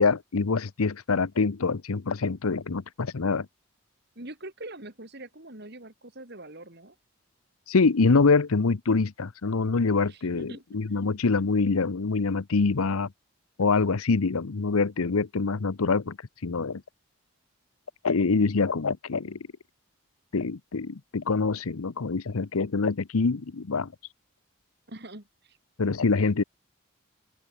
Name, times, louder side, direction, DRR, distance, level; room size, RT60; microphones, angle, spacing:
voice 1, 0.0-3.5 7.7-13.1 13.6-16.2 16.4-16.8 18.0-19.4 20.3-23.9 25.8-26.4, left 4 dB, 85° left, 0.8 m, -25 dB
voice 2, 4.1-6.9 10.1-11.2 24.9-25.6, right 1 dB, 50° right, 3.2 m, -44 dB
open air
head